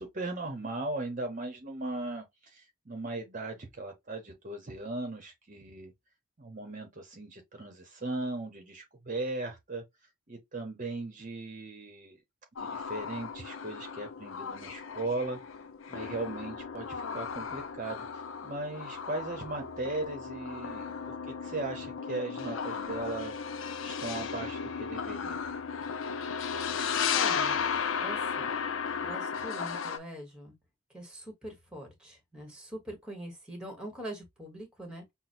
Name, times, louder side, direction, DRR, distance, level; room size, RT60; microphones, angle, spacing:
voice 1, 0.0-2.3 2.5-5.9 6.4-9.8 10.3-12.2 12.6-15.4 15.9-23.3 23.8-25.4, right 2 dB, 40° right, 0.8 m, -38 dB
sound 1, 12.6-30.0, left 6 dB, 80° left, 0.5 m, -35 dB
voice 2, 27.1-27.6 28.0-28.5 29.0-30.5 30.9-35.0, equal, 5° right, 1.4 m, -43 dB
6.0 x 2.1 x 2.6 m
head